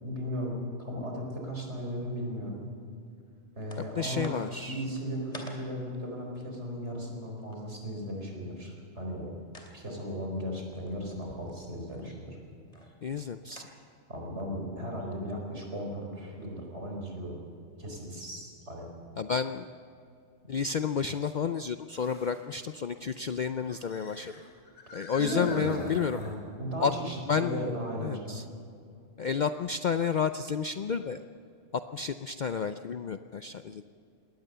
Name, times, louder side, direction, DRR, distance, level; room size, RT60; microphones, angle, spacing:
voice 1, 0.0-2.6 3.6-4.3 4.7-9.3 9.7-12.4 14.1-17.4 17.8-18.9 25.2-28.4, equal, 60° right, 1 dB, 4.6 m, -36 dB
sound 1, 3.7-3.9 4.2-7.6 9.5-9.7 10.7-12.1 12.7-13.2 13.5-13.7, left 1 dB, 30° left, 3.0 m, -48 dB
voice 2, 3.8-4.8 13.0-13.6 19.2-19.7 20.5-24.3 24.9-26.2 26.8-26.9 27.3-27.7 28.0-28.4 29.2-31.2 31.7-33.8, left 6 dB, 55° left, 9 dB, 0.5 m, -31 dB
sound 2, 12.0-12.2 12.8-12.9 15.0-15.1 18.6-18.7 21.9-22.5 23.4-26.4, left 3 dB, 85° left, 3.1 m, -47 dB
21.0 x 18.0 x 6.8 m, 2.5 s
omnidirectional pair, 1.3 m